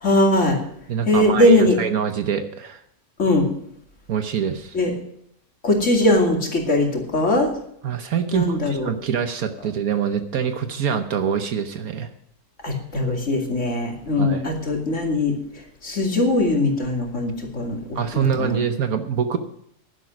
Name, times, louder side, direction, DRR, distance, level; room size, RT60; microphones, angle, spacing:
voice 1, 0.0-0.6 1.1-1.8 3.2-3.5 4.7-4.9 5.6-7.5 8.3-8.9 12.6-15.4 15.8-17.8 18.1-18.6, left 1 dB, 50° left, 1 dB, 2.8 m, -20 dB
voice 2, 0.9-2.8 4.1-4.7 7.8-12.1 14.2-14.4 17.9-19.4, right 7 dB, 70° right, 8 dB, 1.3 m, -25 dB
11.0 x 11.0 x 6.1 m, 0.70 s
omnidirectional pair, 1.6 m